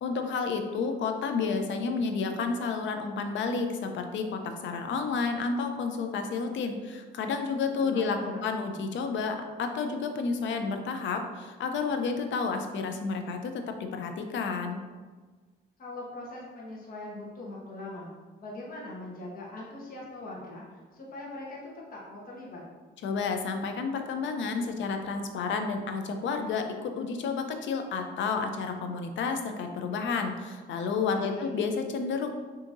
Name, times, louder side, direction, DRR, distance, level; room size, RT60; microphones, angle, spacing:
voice 1, 0.0-13.6 13.9-14.8 23.0-32.3, left 4 dB, 70° left, 6 dB, 0.6 m, -31 dB
voice 2, 7.8-8.5 15.8-18.1 18.4-22.6 31.1-31.5, left 2 dB, 45° left, -4 dB, 1.1 m, -41 dB
6.1 x 2.8 x 2.6 m, 1.4 s
cardioid pair, 90°, 20 cm